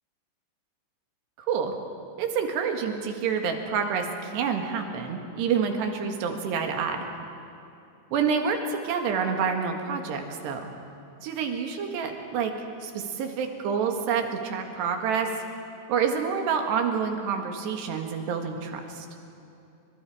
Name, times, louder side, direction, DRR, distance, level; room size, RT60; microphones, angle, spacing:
voice 1, 1.4-1.8 2.2-7.1 8.1-10.6 11.2-12.5 12.8-15.3 15.9-19.1, right 6 dB, 70° right, 4 dB, 3.7 m, -28 dB
30.0 x 26.0 x 5.0 m, 2.8 s
omnidirectional pair, 5.3 m